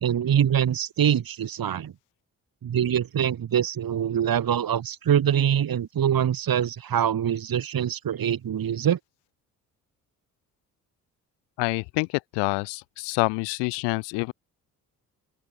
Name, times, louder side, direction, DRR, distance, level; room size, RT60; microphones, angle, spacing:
voice 1, 0.0-1.9 2.6-9.0, right 9 dB, 60° right, 3.2 m, -24 dB
voice 2, 11.6-12.1 12.3-14.3, left 30 dB, 90° left, 1.2 m, -27 dB
open air
supercardioid pair, 55°, 40 cm